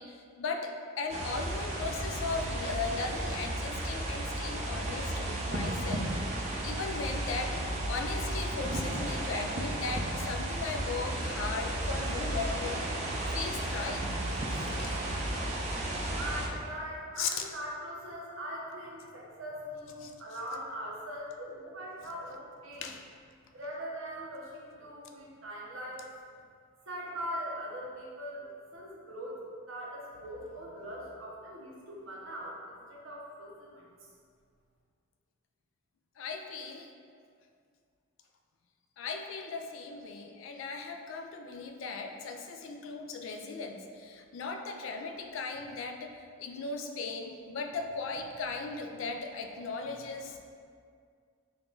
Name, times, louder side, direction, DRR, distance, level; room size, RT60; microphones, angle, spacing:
voice 1, 0.0-6.1 6.6-12.9 13.3-14.1 14.3-15.0 15.3-15.4 16.0-16.2 17.2-17.4 20.0-20.1 22.8-23.0 36.2-36.9 39.0-50.4, left 4 dB, 65° left, 4 dB, 0.3 m, -37 dB
sound 1, 1.1-16.5, right 1 dB, 35° right, 0.4 m, -33 dB
voice 2, 16.2-22.9 23.5-26.1 26.9-29.4 29.7-33.8, equal, 70° right, -3 dB, 0.7 m, -41 dB
3.7 x 2.3 x 3.7 m, 2.2 s
head